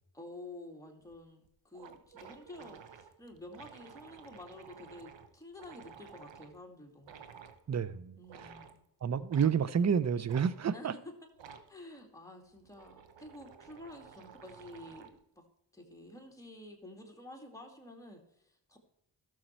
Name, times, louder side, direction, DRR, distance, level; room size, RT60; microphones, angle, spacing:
voice 1, 0.1-7.1 8.2-8.8 10.7-11.1 11.7-15.1 15.4-15.5 15.7-18.8, left 1 dB, 5° left, 2.4 m, -50 dB
sound 1, 1.1-1.2 1.5-1.6 1.7-6.6 7.0-7.6 8.2-8.8 9.3-9.6 10.3-10.5 11.3-11.7 12.5-15.2, right 7 dB, 70° right, 1.0 m, -53 dB
voice 2, 7.7-8.2 9.0-10.9, right 7 dB, 35° right, 0.7 m, -29 dB
12.5 x 6.4 x 4.5 m
cardioid pair, 50°, 46 cm